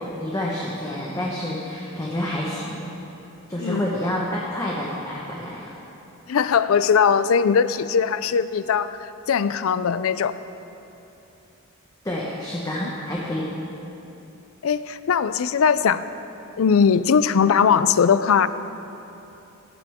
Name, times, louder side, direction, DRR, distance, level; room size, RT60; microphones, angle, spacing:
voice 1, 0.0-2.8 3.5-5.7 12.0-13.5, left 1 dB, 15° left, -4 dB, 1.2 m, -28 dB
voice 2, 6.3-10.3 14.6-16.1 16.6-18.5, left 6 dB, 75° left, 14 dB, 0.4 m, -20 dB
16.5 x 11.0 x 3.6 m, 2.9 s
head